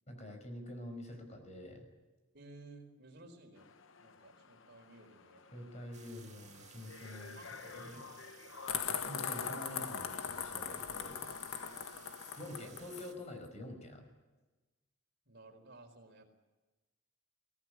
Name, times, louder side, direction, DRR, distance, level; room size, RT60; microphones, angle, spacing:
voice 1, 0.1-1.9 5.5-7.4 7.7-8.1 8.9-11.2 12.4-14.1, left 1 dB, 35° left, 6 dB, 5.6 m, -47 dB
voice 2, 2.3-3.7 4.0-5.9 7.3-8.2 11.6-11.8 15.3-16.3, right 2 dB, 50° right, 5 dB, 4.5 m, -56 dB
sound 1, 3.6-9.8, left 4 dB, 65° left, 1.0 m, -52 dB
sound 2, 5.9-13.1, right 7 dB, 35° right, 2.2 m, -59 dB
sound 3, 8.7-13.1, left 7 dB, 90° left, 1.6 m, -40 dB
23.5 x 17.5 x 9.7 m, 1.2 s
head